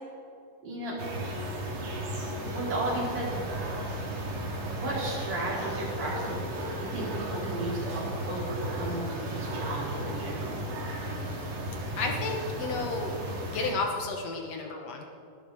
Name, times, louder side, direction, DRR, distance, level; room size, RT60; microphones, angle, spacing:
voice 1, 0.6-1.0 2.4-3.6 4.7-10.6, right 1 dB, 45° right, -6 dB, 5.1 m, -34 dB
sound 1, 1.0-13.7, right 1 dB, 75° right, 4.4 m, -34 dB
voice 2, 12.0-13.1 13.5-15.1, left 3 dB, 65° left, 2 dB, 1.6 m, -32 dB
20.0 x 12.0 x 4.2 m, 2.5 s
omnidirectional pair, 4.5 m